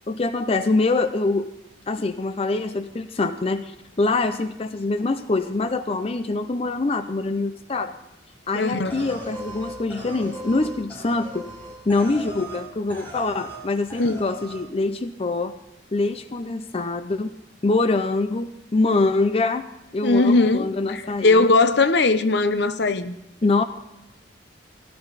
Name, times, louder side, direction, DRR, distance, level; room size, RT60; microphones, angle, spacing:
voice 1, 0.1-1.5 1.9-8.0 8.5-11.4 11.9-15.5 15.9-17.3 17.6-19.6 19.9-21.5 23.4-23.6, left 3 dB, 35° left, 0.5 m, -24 dB
voice 2, 8.5-9.1 14.0-14.2 20.0-23.2, left 3 dB, 65° left, 0.8 m, -19 dB
sound 1, 8.9-12.6 12.9-13.6 13.9-14.6, right 1 dB, 10° left, 5.4 m, -38 dB
17.5 x 12.5 x 4.0 m
head